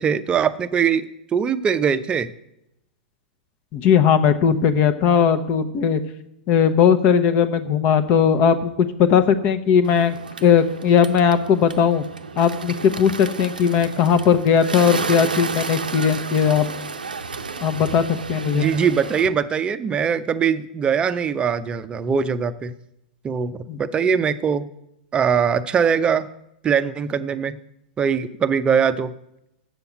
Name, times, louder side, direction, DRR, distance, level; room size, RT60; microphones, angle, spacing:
voice 1, 0.0-2.3 18.5-22.7 23.2-24.7 25.1-26.3 26.6-27.6 28.0-29.1, right 7 dB, 20° right, 12 dB, 0.6 m, -21 dB
voice 2, 3.7-6.0 6.5-12.0 12.4-16.7 17.6-18.7 23.7-23.8, left 7 dB, 40° left, 10 dB, 0.9 m, -18 dB
Bird, 9.8-19.3, right 4 dB, 85° right, 0.7 m, -32 dB
7.8 x 7.0 x 8.0 m, 0.84 s
hypercardioid pair, 105°, 5 cm